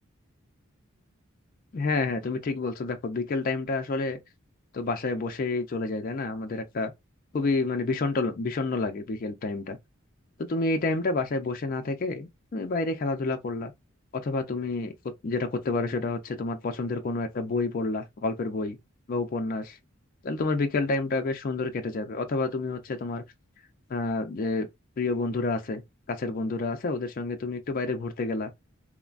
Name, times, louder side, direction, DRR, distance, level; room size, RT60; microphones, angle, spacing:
voice 1, 1.7-4.2 4.7-6.9 7.3-9.8 10.4-13.7 14.1-14.9 15.2-18.8 19.1-19.8 20.2-23.2 23.9-24.7 25.0-25.8 26.1-28.5, left 3 dB, 40° left, 0.4 m, -29 dB
3.1 x 2.1 x 2.4 m
head